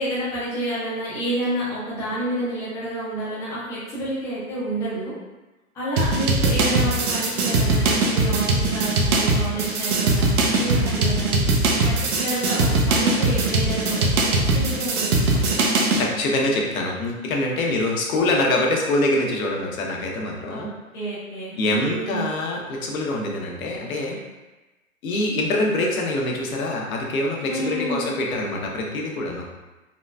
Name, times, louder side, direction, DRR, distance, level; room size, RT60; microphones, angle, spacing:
voice 1, 0.0-5.1 5.7-11.4 11.8-15.4 20.5-20.7 20.9-22.3 27.5-28.0, right 1 dB, 5° left, -10 dB, 0.4 m, -29 dB
sound 1, 6.0-16.1, right 2 dB, 80° right, 0.7 m, -21 dB
voice 2, 16.0-20.7 21.6-24.2 25.0-29.5, left 2 dB, 70° left, 0 dB, 0.8 m, -24 dB
3.8 x 2.2 x 2.2 m, 1.1 s
hypercardioid pair, 130°, 43 cm